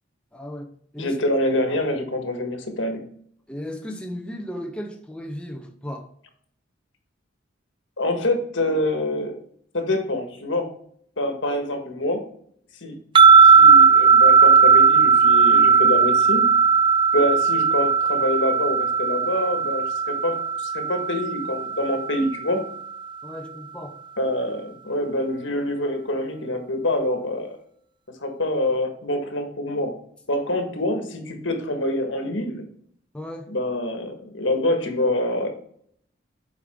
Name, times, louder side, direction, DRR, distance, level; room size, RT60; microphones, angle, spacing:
voice 1, 0.3-1.2 3.5-6.1 23.2-24.0 33.1-33.5, equal, 5° left, 0.6 m, -35 dB
voice 2, 1.0-3.0 8.0-9.4 9.7-10.7 11.2-12.2 12.8-13.0 13.4-16.5 17.1-22.6 24.2-27.6 28.2-30.0 30.3-32.6 33.5-35.5, left 1 dB, 80° left, 1.6 m, -26 dB
sound 1, 13.2-22.4, right 5 dB, 25° right, 0.3 m, -16 dB
8.2 x 5.0 x 3.6 m
head